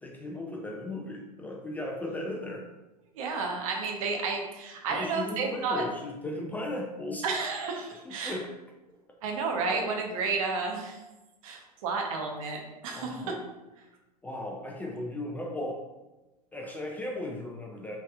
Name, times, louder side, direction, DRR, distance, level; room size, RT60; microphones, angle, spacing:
voice 1, 0.0-2.7 4.9-7.2 8.1-8.5 13.0-13.4 14.2-15.8 16.5-18.0, left 1 dB, 10° left, -1 dB, 0.4 m, -36 dB
voice 2, 3.1-5.8 7.2-8.4 9.2-11.0 11.4-13.2, right 4 dB, 55° right, 2 dB, 0.8 m, -31 dB
4.0 x 3.3 x 2.4 m, 1.0 s
figure-of-eight pair, 90°, 20 cm